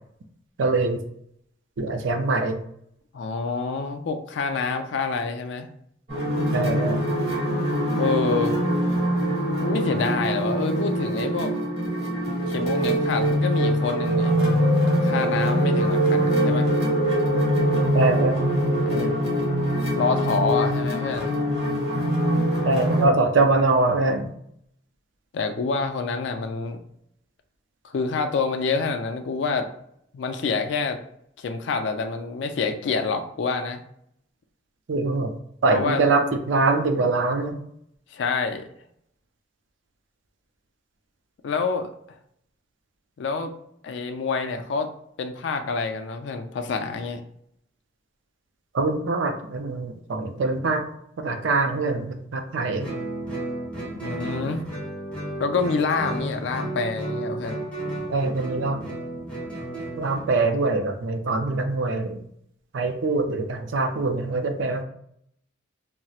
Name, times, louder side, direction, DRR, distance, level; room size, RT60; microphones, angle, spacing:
voice 1, 0.6-1.0 1.8-2.6 6.5-7.0 17.9-18.5 22.6-24.3 34.9-35.3 35.6-37.6 48.7-50.8 51.2-52.9 58.1-58.9 60.0-62.2 62.7-64.8, right 3 dB, 75° right, 6 dB, 0.4 m, -23 dB
voice 2, 3.1-5.7 8.0-8.6 9.6-11.5 12.5-16.7 18.9-19.1 20.0-21.4 25.3-26.8 27.8-29.7 30.1-31.0 31.4-33.8 35.7-36.0 38.1-38.7 41.4-41.9 43.2-43.5 43.8-44.9 45.2-47.2 54.0-54.6 55.4-57.6, left 4 dB, 65° left, 7 dB, 0.3 m, -27 dB
sound 1, 6.1-23.1, equal, 35° right, 1.4 m, -23 dB
Guitar, 52.8-60.3, right 1 dB, 5° left, 0.9 m, -33 dB
4.1 x 2.0 x 2.3 m, 0.70 s
head